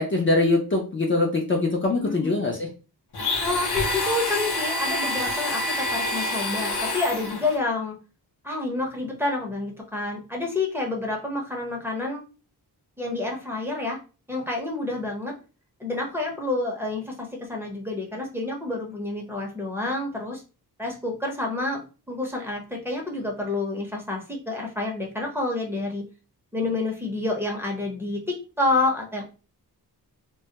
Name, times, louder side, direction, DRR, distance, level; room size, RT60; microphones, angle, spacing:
voice 1, 0.0-2.7, left 2 dB, 30° left, 0 dB, 0.5 m, -23 dB
voice 2, 2.0-2.3 3.4-8.0 8.4-12.2 13.0-14.0 14.3-15.3 15.8-20.4 20.8-26.0 26.5-29.2, left 2 dB, 5° right, -1 dB, 0.7 m, -28 dB
Domestic sounds home sounds, 3.1-7.6, left 2 dB, 75° left, 0.8 m, -27 dB
2.2 x 2.1 x 2.8 m, 0.34 s
wide cardioid pair, 95°, 39 cm